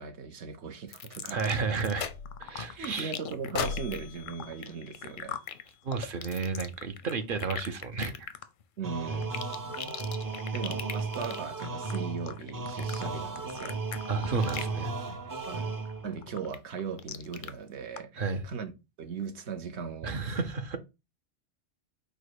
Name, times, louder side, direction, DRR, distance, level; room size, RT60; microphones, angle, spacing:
voice 1, 0.0-1.5 2.7-5.4 8.8-10.0 10.5-13.8 15.5-15.7 16.0-18.7 19.0-20.4, right 5 dB, 70° right, 1.1 m, -38 dB
sound 1, 0.9-2.0 2.2-14.8 15.1-15.5 15.9-17.5 18.0-18.1, left 8 dB, 60° left, 0.6 m, -41 dB
voice 2, 1.3-2.1 2.4-3.1 5.8-8.1 14.1-15.2 18.2-18.4 20.0-20.8, right 4 dB, 55° right, 0.7 m, -32 dB
sound 2, 1.9-2.6 3.5-5.8, left 7 dB, 90° left, 1.0 m, -38 dB
sound 3, 8.8-16.2, right 4 dB, 35° right, 0.3 m, -35 dB
4.8 x 2.1 x 4.6 m
omnidirectional pair, 1.2 m